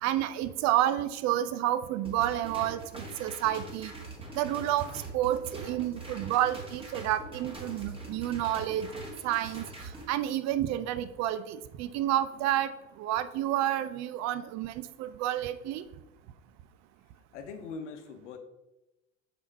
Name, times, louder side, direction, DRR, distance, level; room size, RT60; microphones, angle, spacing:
voice 1, 0.0-3.9 4.3-8.9 9.2-9.7 10.1-12.7 13.0-15.8, right 12 dB, 50° right, 13 dB, 0.6 m, -30 dB
sound 1, 2.0-10.0, right 3 dB, 15° right, 1.9 m, -43 dB
voice 2, 17.3-18.4, left 4 dB, 75° left, 7 dB, 0.9 m, -41 dB
5.4 x 5.0 x 4.7 m, 0.97 s
figure-of-eight pair, 65°, 36 cm